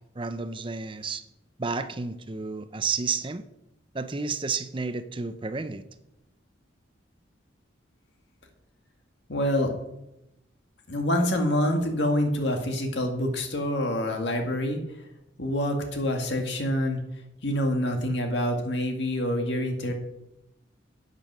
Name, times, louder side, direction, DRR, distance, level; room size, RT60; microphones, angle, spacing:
voice 1, 0.1-1.2 1.6-3.4 3.9-5.9, right 4 dB, 25° right, 11 dB, 0.6 m, -31 dB
voice 2, 9.3-9.7 10.9-14.8 15.4-17.0 17.4-19.9, left 1 dB, 65° left, 3 dB, 1.8 m, -26 dB
8.9 x 8.4 x 6.0 m, 0.90 s
head